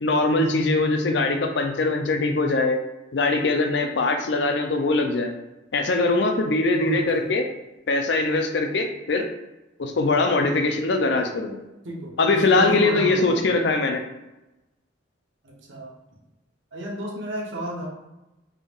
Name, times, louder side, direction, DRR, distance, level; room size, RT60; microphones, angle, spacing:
voice 1, 0.0-2.8 3.1-5.3 5.7-7.4 7.9-9.3 9.8-11.6 12.2-14.0, left 3 dB, 65° left, 4 dB, 0.5 m, -22 dB
voice 2, 6.8-7.4 11.8-13.4 15.4-15.9 16.7-17.9, equal, 80° right, -2 dB, 1.0 m, -32 dB
3.7 x 2.5 x 3.5 m, 0.97 s
head